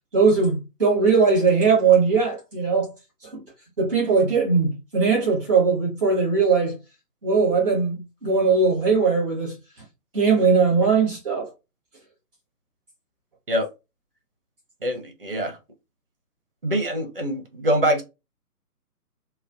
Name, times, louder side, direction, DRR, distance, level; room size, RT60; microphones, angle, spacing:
voice 1, 0.1-2.9 3.3-3.4 3.8-6.8 7.2-9.5 10.1-11.5, right 5 dB, ahead, 0.8 m, -20 dB
voice 2, 14.8-15.6 16.6-18.0, equal, 40° right, 0.5 m, -24 dB
2.4 x 2.1 x 2.4 m
figure-of-eight pair, 140°, 47 cm